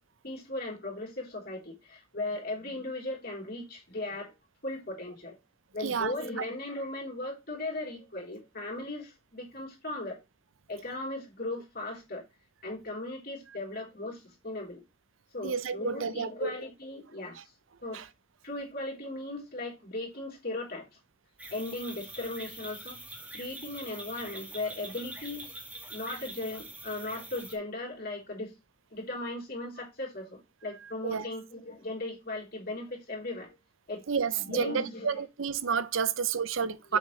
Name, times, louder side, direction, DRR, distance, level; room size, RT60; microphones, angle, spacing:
voice 1, 0.2-4.3 4.6-5.4 5.7-10.2 10.7-12.2 12.6-14.8 15.3-17.4 17.8-18.0 18.4-20.9 21.5-23.0 23.3-25.5 25.7-28.5 28.9-33.6 33.9-34.0 34.3-35.3 36.9-37.0, left 2 dB, 50° left, 3.6 m, -37 dB
voice 2, 5.8-6.4 15.4-16.5 17.9-18.1 31.0-31.3 34.1-37.0, right 6 dB, 75° right, 0.7 m, -30 dB
sound 1, 21.4-27.5, right 1 dB, 5° right, 1.6 m, -44 dB
7.2 x 6.2 x 3.2 m
head